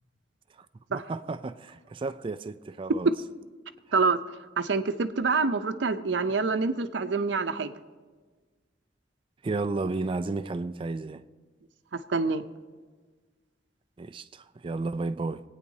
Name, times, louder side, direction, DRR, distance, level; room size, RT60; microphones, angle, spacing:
voice 1, 0.9-3.1 9.4-11.2 14.0-15.4, right 3 dB, 30° right, 0.3 m, -32 dB
voice 2, 4.6-7.7 11.9-12.4, right 4 dB, 80° right, 0.6 m, -26 dB
24.0 x 9.2 x 2.7 m
head